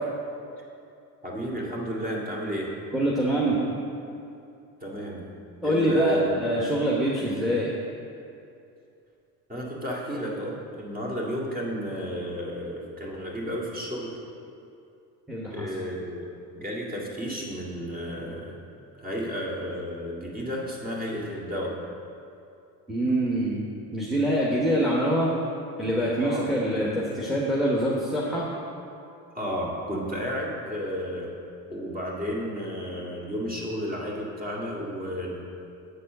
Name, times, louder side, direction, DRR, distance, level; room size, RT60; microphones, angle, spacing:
voice 1, 1.2-2.7 4.8-5.2 5.6-6.3 9.5-14.1 15.4-18.5 18.9-21.7 26.2-26.6 29.3-31.3 31.7-35.4, equal, 20° right, -3 dB, 2.1 m, -32 dB
voice 2, 2.9-3.6 5.6-7.7 15.3-15.7 22.9-23.6 23.9-25.3 25.8-28.4, right 1 dB, ahead, -5 dB, 1.1 m, -25 dB
8.0 x 4.2 x 6.6 m, 2.6 s
supercardioid pair, 80°, 42 cm